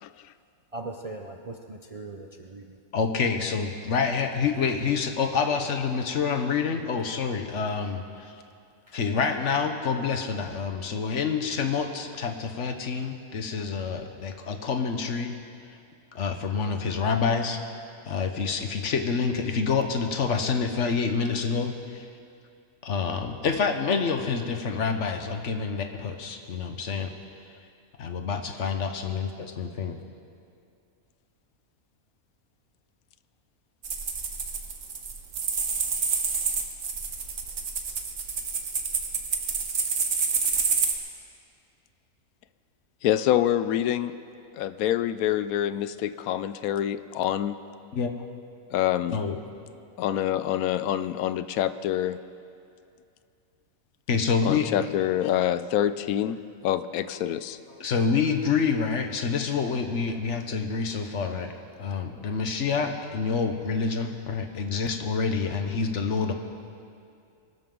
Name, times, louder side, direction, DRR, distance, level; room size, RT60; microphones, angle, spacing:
voice 1, 0.7-2.8 8.9-9.0, right 2 dB, 40° right, 2 dB, 0.5 m, -39 dB
voice 2, 2.9-8.3 8.9-15.4 16.1-17.6 18.0-22.0 22.8-27.1 28.0-29.3 29.6-30.0 47.9-48.1 49.1-49.4 54.1-54.7 57.8-61.5 61.8-66.3, left 5 dB, 60° left, 6 dB, 1.3 m, -27 dB
sound 1, 33.8-40.9, right 5 dB, 60° right, 1.5 m, -28 dB
voice 3, 43.0-44.1 44.5-47.6 48.7-49.2 50.0-52.2 54.4-56.4 56.6-57.6, left 11 dB, 85° left, 13 dB, 1.0 m, -26 dB
23.5 x 13.0 x 3.8 m, 2.4 s
omnidirectional pair, 1.5 m